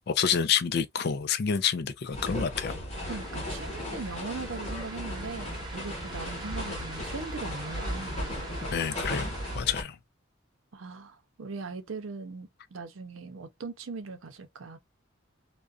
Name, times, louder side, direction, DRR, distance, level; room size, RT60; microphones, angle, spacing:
voice 1, 0.1-2.8 8.7-10.0, left 7 dB, 55° left, 0.4 m, -28 dB
sound 1, 2.1-9.8, left 1 dB, 35° left, 1.0 m, -36 dB
sound 2, 2.9-9.6, right 2 dB, 20° right, 0.9 m, -43 dB
voice 2, 3.1-8.2 10.7-14.8, right 4 dB, 90° right, 0.6 m, -40 dB
2.4 x 2.1 x 2.3 m
head